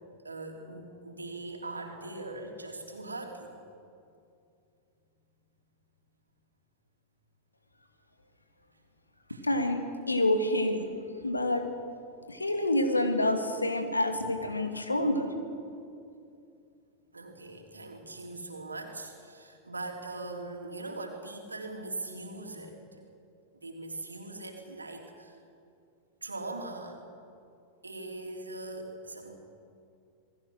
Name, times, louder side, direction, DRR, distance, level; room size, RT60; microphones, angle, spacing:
voice 1, 0.2-3.5 9.3-9.4 17.1-22.8 23.5-25.4 26.2-27.0 27.8-29.4, right 2 dB, 80° right, 2 dB, 3.4 m, -41 dB
voice 2, 9.4-10.9 11.2-11.7 12.3-15.3, left 1 dB, 80° left, 6 dB, 2.5 m, -27 dB
27.5 x 20.5 x 6.3 m, 2.5 s
figure-of-eight pair, 90°, 0 cm